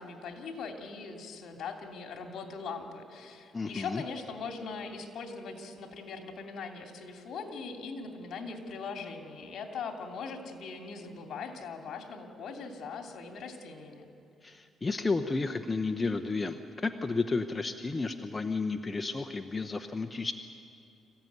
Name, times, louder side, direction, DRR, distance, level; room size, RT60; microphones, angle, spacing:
voice 1, 0.0-14.1, left 4 dB, 65° left, 3 dB, 2.9 m, -41 dB
voice 2, 3.5-4.0 14.4-20.3, left 3 dB, 25° left, 7 dB, 0.9 m, -32 dB
26.0 x 15.0 x 9.5 m, 2.5 s
cardioid pair, 90°, 0 cm